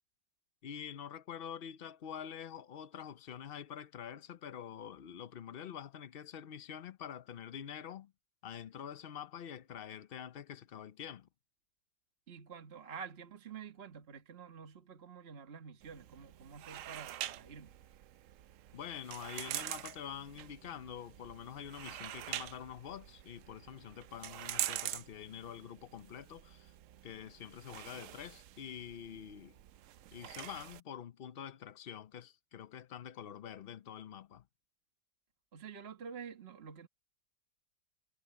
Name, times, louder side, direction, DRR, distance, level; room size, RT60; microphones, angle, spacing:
voice 1, 0.6-8.1 8.4-11.3 18.7-26.7 27.0-29.5 30.1-34.4, left 9 dB, 70° left, 0.5 m, -46 dB
voice 2, 12.3-17.8 35.5-36.9, right 6 dB, 35° right, 1.6 m, -49 dB
sound 1, 15.8-30.8, right 12 dB, 70° right, 0.7 m, -45 dB
omnidirectional pair, 1.9 m